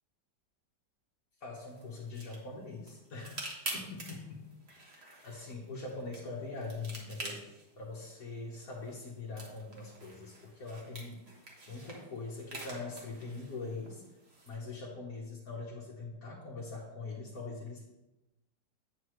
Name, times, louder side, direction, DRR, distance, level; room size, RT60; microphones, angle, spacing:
voice 1, 1.4-4.5 4.9-7.5 7.8-11.2 11.7-14.0 14.4-17.9, left 3 dB, 55° left, -4 dB, 1.6 m, -42 dB
sound 1, 1.6-14.6, right 2 dB, 40° right, 1.5 m, -48 dB
8.4 x 7.4 x 3.2 m, 0.99 s
omnidirectional pair, 1.9 m